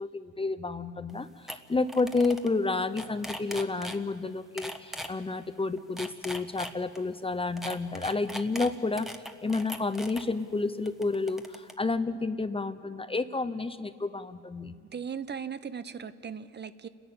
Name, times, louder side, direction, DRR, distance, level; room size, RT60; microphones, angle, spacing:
voice 1, 0.0-9.1 9.4-14.7, left 3 dB, 20° left, 12 dB, 0.7 m, -30 dB
sound 1, 1.1-1.2 1.5-1.6 1.9-2.5 2.8-4.0 4.6-5.1 5.8-7.0 7.6-10.2 10.9-11.7, equal, ahead, 1.2 m, -39 dB
voice 2, 14.9-16.9, right 7 dB, 35° right, 13 dB, 0.7 m, -38 dB
29.0 x 11.0 x 8.7 m, 2.2 s
cardioid pair, 90°, 30 cm